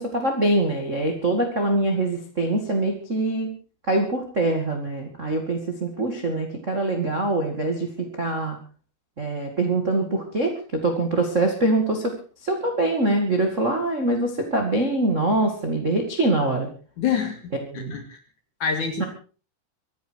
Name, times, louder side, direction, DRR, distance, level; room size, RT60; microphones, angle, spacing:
voice 1, 0.0-3.5 3.9-7.9 8.2-8.6 9.2-12.1 12.4-16.7 17.7-17.9 19.0-19.1, right 2 dB, 35° right, 2 dB, 1.1 m, -24 dB
voice 2, 17.0-18.2 18.6-19.1, left 7 dB, 50° left, 5 dB, 3.3 m, -27 dB
24.5 x 10.5 x 4.7 m, 0.37 s
omnidirectional pair, 5.3 m